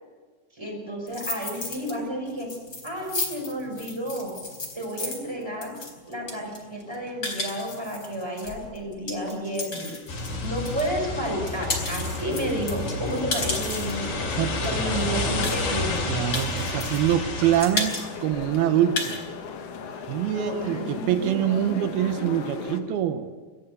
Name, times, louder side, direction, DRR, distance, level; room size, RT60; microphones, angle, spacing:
voice 1, 0.5-2.5 2.8-4.3 4.7-5.7 6.1-10.0 10.4-16.1 20.3-21.4 22.2-22.8, equal, 5° right, 1 dB, 5.6 m, -31 dB
sound 1, 1.1-1.9 2.3-10.9 11.2-14.1 14.6-14.7 14.9-15.0 15.4-16.0 16.3-17.1 17.4-18.0 18.4-18.5 18.8-19.2, left 2 dB, 20° left, 4.3 m, -33 dB
sound 2, 10.1-17.6, left 2 dB, 50° left, 5.2 m, -30 dB
voice 2, 16.1-19.2 20.1-23.3, right 11 dB, 70° right, 9 dB, 2.6 m, -24 dB
sound 3, 17.7-22.8, left 6 dB, 70° left, 1.4 m, -38 dB
29.5 x 14.0 x 6.9 m, 1.4 s
omnidirectional pair, 5.1 m